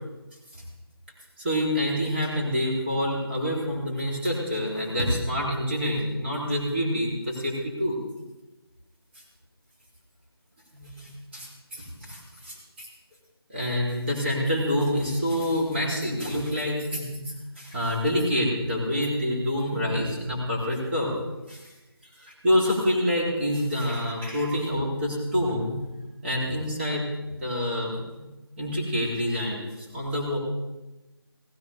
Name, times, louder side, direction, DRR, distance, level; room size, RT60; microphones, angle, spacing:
voice 1, 1.4-8.0 10.7-12.9 13.5-17.2 17.6-21.1 21.5-21.6 22.2-25.8 26.2-28.3 28.6-30.4, equal, 25° right, -5 dB, 3.7 m, -27 dB
16.5 x 15.0 x 3.6 m, 1.1 s
figure-of-eight pair, 165°, 13 cm